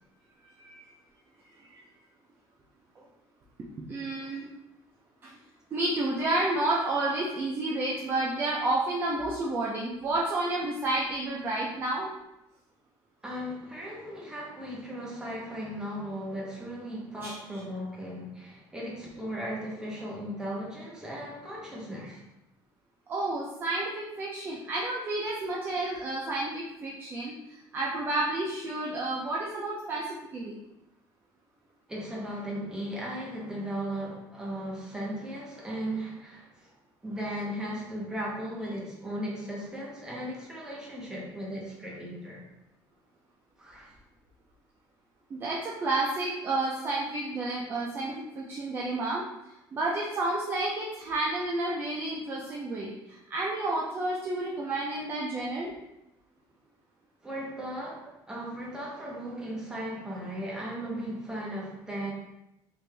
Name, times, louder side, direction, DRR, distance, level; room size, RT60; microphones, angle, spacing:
voice 1, 0.6-0.9 1.7-1.8 3.0-3.1 3.9-4.5 5.2-5.4 5.7-12.1 17.2-17.3 23.1-30.6 45.3-49.2 49.7-55.7, right 2 dB, 25° right, -4 dB, 0.4 m, -30 dB
voice 2, 13.2-22.2 31.9-36.7 37.0-42.4 43.6-43.9 57.2-62.1, equal, 5° right, -4 dB, 0.8 m, -37 dB
3.3 x 2.5 x 3.3 m, 0.89 s
cardioid pair, 165°, 9 cm